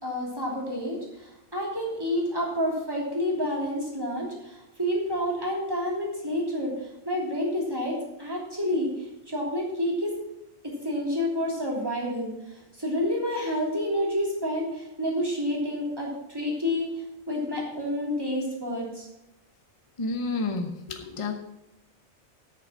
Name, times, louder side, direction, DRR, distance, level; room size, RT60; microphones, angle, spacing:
voice 1, 0.0-10.1 10.6-16.9 17.3-19.1, left 1 dB, 20° right, -3 dB, 3.2 m, -29 dB
voice 2, 20.0-21.3, left 3 dB, 30° left, 5 dB, 1.0 m, -30 dB
8.8 x 7.0 x 7.4 m, 0.88 s
omnidirectional pair, 1.2 m